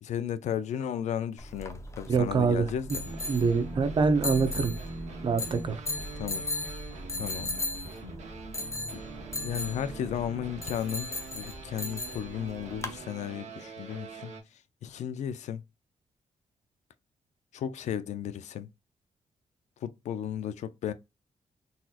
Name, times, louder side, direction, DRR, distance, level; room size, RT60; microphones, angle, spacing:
voice 1, 0.0-2.9 6.1-6.5 7.2-7.5 9.4-14.3 14.8-15.6 17.5-18.7 19.8-20.9, left 9 dB, 80° left, 0.4 m, -34 dB
sound 1, 1.4-13.0, left 2 dB, 25° left, 0.6 m, -37 dB
voice 2, 2.1-3.0 3.3-4.7 5.2-5.8, right 5 dB, 45° right, 0.7 m, -25 dB
sound 2, 2.9-14.4, right 3 dB, 90° right, 1.2 m, -43 dB
4.0 x 2.8 x 2.4 m
wide cardioid pair, 145°, 12 cm